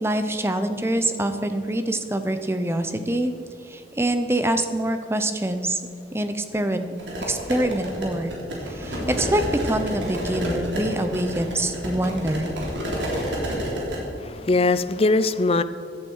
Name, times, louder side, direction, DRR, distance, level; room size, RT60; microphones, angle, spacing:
voice 1, 0.0-3.3 3.7-5.8 6.1-6.9 7.3-8.4 8.7-12.5, right 1 dB, 15° right, 8 dB, 0.8 m, -25 dB
sound 1, 7.0-14.0, equal, 80° right, 3.5 m, -29 dB
voice 2, 14.2-15.6, left 3 dB, 30° left, 13 dB, 0.5 m, -21 dB
15.5 x 11.0 x 4.7 m, 2.6 s
head